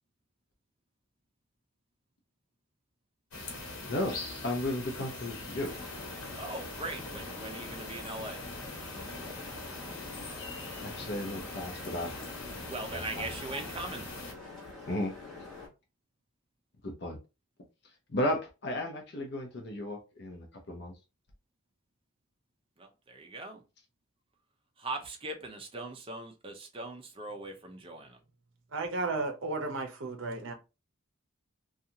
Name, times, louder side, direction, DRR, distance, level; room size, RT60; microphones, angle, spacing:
sound 1, 3.3-14.3, left 2 dB, 80° left, 1.1 m, -42 dB
voice 1, 4.4-5.7 10.8-12.1 12.9-13.3 14.9-15.1 16.8-17.2 18.1-20.9, left 1 dB, 50° left, 0.6 m, -34 dB
sound 2, 5.5-15.7, left 3 dB, ahead, 1.1 m, -46 dB
voice 2, 6.3-8.4 12.6-14.1 22.8-23.6 24.8-28.2, right 2 dB, 25° right, 0.5 m, -40 dB
voice 3, 28.7-30.5, right 3 dB, 60° right, 0.7 m, -33 dB
2.7 x 2.3 x 2.7 m
head